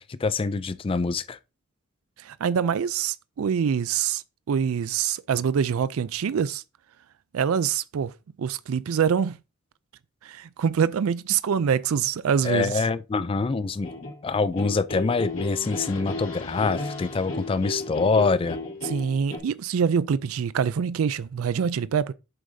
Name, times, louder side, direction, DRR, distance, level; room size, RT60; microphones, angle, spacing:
voice 1, 0.0-1.4 12.4-18.6, left 4 dB, 25° left, 0.3 m, -25 dB
voice 2, 2.2-6.6 7.3-9.4 10.2-12.7 18.8-22.1, right 7 dB, 85° right, 0.4 m, -25 dB
sound 1, 13.5-19.4, left 2 dB, 65° left, 2.7 m, -34 dB
8.0 x 7.5 x 2.7 m
head